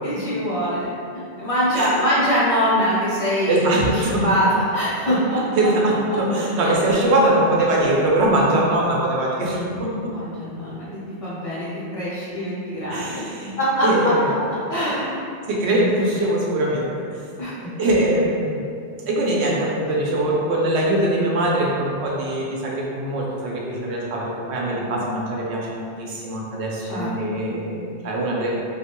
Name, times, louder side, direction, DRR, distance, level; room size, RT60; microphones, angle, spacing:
voice 1, 0.0-5.7 6.6-6.7 10.1-10.9 11.2-13.2 13.6-13.9 14.7-15.2 15.6-16.3 17.4-17.7 26.9-27.4, equal, 40° left, -10 dB, 0.6 m, -23 dB
voice 2, 3.5-4.3 5.5-10.1 12.9-13.5 13.8-14.4 15.5-16.9 17.8-18.7 19.1-28.5, right 1 dB, 90° right, -3 dB, 0.8 m, -22 dB
2.3 x 2.1 x 2.9 m, 2.4 s
omnidirectional pair, 1.1 m